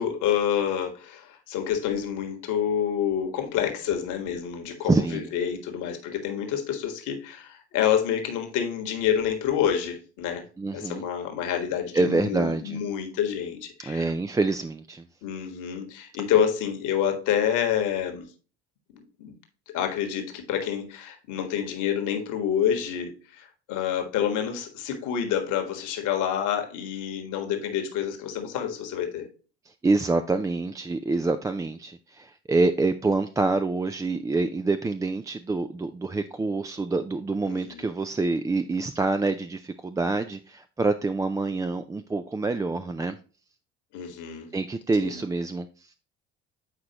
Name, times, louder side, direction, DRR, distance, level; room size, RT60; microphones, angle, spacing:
voice 1, 0.0-10.4 10.7-14.1 15.2-18.3 19.2-19.3 19.7-29.3 37.4-37.9 43.9-44.5 45.0-45.2, left 9 dB, 65° left, 1.6 m, -28 dB
voice 2, 4.8-5.3 10.6-11.0 11.9-12.8 13.9-15.1 29.7-43.2 44.5-45.9, right 3 dB, 10° right, 0.3 m, -26 dB
8.2 x 4.8 x 2.9 m
hypercardioid pair, 55°, 33 cm